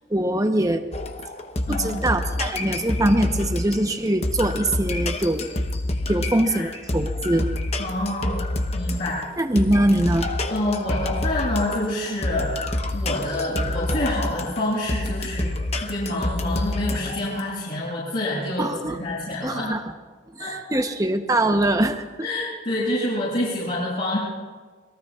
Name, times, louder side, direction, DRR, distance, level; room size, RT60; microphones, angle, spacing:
voice 1, 0.1-0.8 1.7-5.5 6.1-7.5 9.4-10.3 18.6-19.0 19.4-19.8 20.3-22.1, right 1 dB, 15° right, 6 dB, 0.9 m, -22 dB
sound 1, 0.9-17.4, left 1 dB, 35° left, 0.9 m, -28 dB
voice 2, 1.7-2.1 6.2-6.7 7.8-8.4 8.7-9.3 10.5-19.7 20.4-20.8 22.2-24.2, left 1 dB, 50° left, -9 dB, 7.0 m, -27 dB
27.5 x 21.5 x 2.4 m, 1.5 s
head